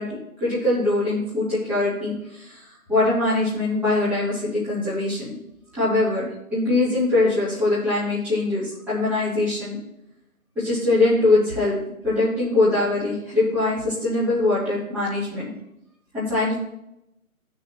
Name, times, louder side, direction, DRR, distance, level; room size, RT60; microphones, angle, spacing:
voice 1, 0.0-2.6 2.9-5.4 5.7-9.8 10.6-11.8 12.0-15.5 16.1-16.6, left 2 dB, 5° right, -13 dB, 2.5 m, -22 dB
16.5 x 6.4 x 2.9 m, 0.85 s
hypercardioid pair, 165°, 43 cm